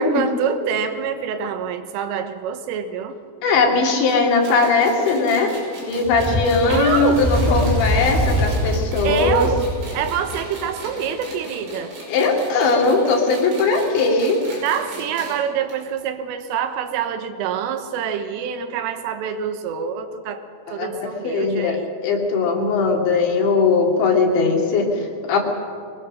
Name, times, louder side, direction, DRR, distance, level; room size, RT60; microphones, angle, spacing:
voice 1, 0.0-3.2 6.7-7.3 9.0-12.0 14.6-21.9, right 8 dB, 85° right, 9 dB, 3.8 m, -26 dB
voice 2, 3.4-5.5 5.8-9.5 12.1-14.4 20.8-20.9 21.2-21.8 22.0-25.4, left 4 dB, 65° left, 1 dB, 4.6 m, -19 dB
sound 1, 4.1-15.4 15.7-15.8 16.1-16.2 17.0-17.1, right 1 dB, 70° right, 8.3 m, -38 dB
Fire, 6.0-10.6, equal, 10° right, 1.5 m, -23 dB
23.5 x 20.5 x 6.4 m, 2.2 s
omnidirectional pair, 5.7 m